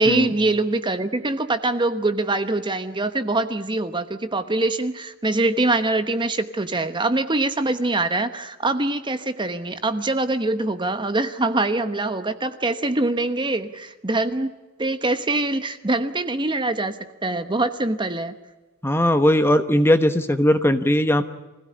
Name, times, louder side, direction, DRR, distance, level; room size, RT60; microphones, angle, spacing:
voice 1, 0.0-14.5 14.8-18.3, right 2 dB, 20° right, 10 dB, 1.1 m, -23 dB
voice 2, 18.8-21.2, left 1 dB, 10° left, 9 dB, 1.0 m, -18 dB
24.5 x 16.5 x 9.9 m, 1.1 s
head